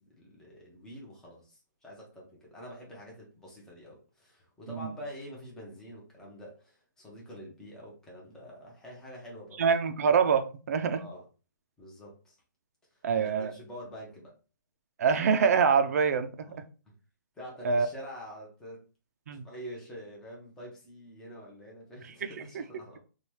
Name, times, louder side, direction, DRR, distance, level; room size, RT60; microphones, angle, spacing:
voice 1, 0.0-9.6 10.9-11.2 11.8-12.4 12.9-14.3 16.4-16.9 17.4-18.8 19.3-23.0, equal, 5° left, -4 dB, 0.6 m, -46 dB
voice 2, 9.6-11.0 13.0-13.5 15.0-16.6 17.6-17.9 19.3-19.4 22.2-22.6, right 6 dB, 50° right, 10 dB, 0.4 m, -25 dB
2.7 x 2.2 x 3.1 m, 0.36 s
hypercardioid pair, 160°, 11 cm